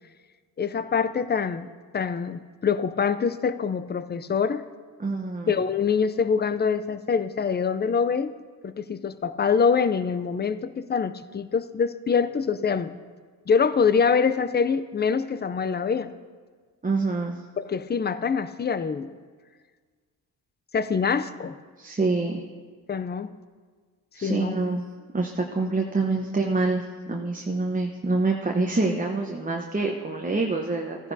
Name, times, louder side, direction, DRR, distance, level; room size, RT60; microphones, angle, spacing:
voice 1, 0.6-1.7 1.9-4.6 5.5-8.3 8.6-12.9 13.5-16.1 17.6-19.2 20.7-21.6 22.9-23.3 24.2-24.6, left 6 dB, 25° left, 12 dB, 0.5 m, -25 dB
voice 2, 5.0-5.5 16.8-17.4 21.8-22.4 24.2-24.8 25.1-31.1, right 3 dB, 20° right, 1 dB, 1.0 m, -26 dB
14.5 x 10.5 x 2.7 m, 1.5 s
cardioid pair, 60°, 42 cm